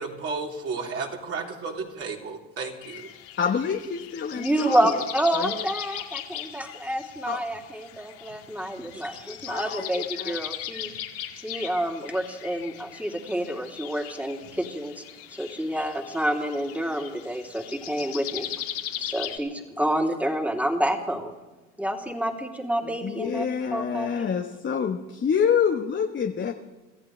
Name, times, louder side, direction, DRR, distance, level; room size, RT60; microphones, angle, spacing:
voice 1, 0.0-3.1, right 4 dB, 40° right, -1 dB, 3.9 m, -33 dB
sound 1, 2.8-19.4, left 11 dB, 70° left, 2.4 m, -39 dB
voice 2, 3.4-4.9 5.3-5.7 7.3-7.4 9.5-10.4 22.8-26.5, left 7 dB, 30° left, 3 dB, 1.3 m, -27 dB
voice 3, 4.3-10.9 11.4-15.0 15.4-18.5 19.0-21.3 21.8-23.4 23.7-24.3, right 1 dB, 5° right, 1 dB, 3.1 m, -28 dB
27.0 x 14.5 x 3.4 m, 1.1 s
hypercardioid pair, 75°, 35 cm